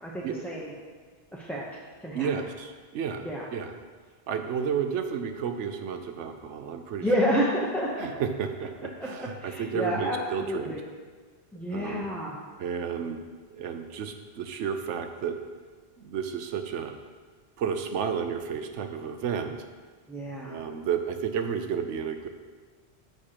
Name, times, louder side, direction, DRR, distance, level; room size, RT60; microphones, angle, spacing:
voice 1, 0.0-0.7 1.3-1.6 2.0-2.4 3.2-3.5 7.0-8.1 9.0-10.8 11.5-12.4 20.1-20.6, equal, ahead, -6 dB, 0.6 m, -30 dB
voice 2, 2.1-3.3 3.5-3.7 4.3-7.1 8.0-10.7 11.7-12.1 12.6-13.2 13.5-15.4 16.0-16.9 17.6-19.6 20.4-22.3, right 7 dB, 85° right, 7 dB, 1.0 m, -32 dB
9.8 x 6.6 x 2.9 m, 1.5 s
omnidirectional pair, 1.2 m